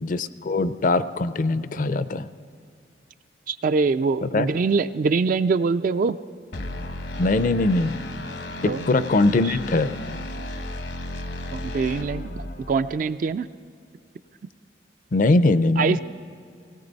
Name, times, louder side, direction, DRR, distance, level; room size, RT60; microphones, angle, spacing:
voice 1, 0.0-2.3 4.2-4.5 7.2-8.0 8.6-9.9 15.1-16.0, left 2 dB, 50° left, 14 dB, 0.5 m, -21 dB
voice 2, 3.5-6.2 8.6-8.8 9.4-9.6 11.5-13.5 15.8-16.0, right 4 dB, 50° right, 12 dB, 0.3 m, -23 dB
sound 1, 6.5-13.0, left 1 dB, 75° left, 1.0 m, -34 dB
18.5 x 17.0 x 4.0 m, 2.4 s
head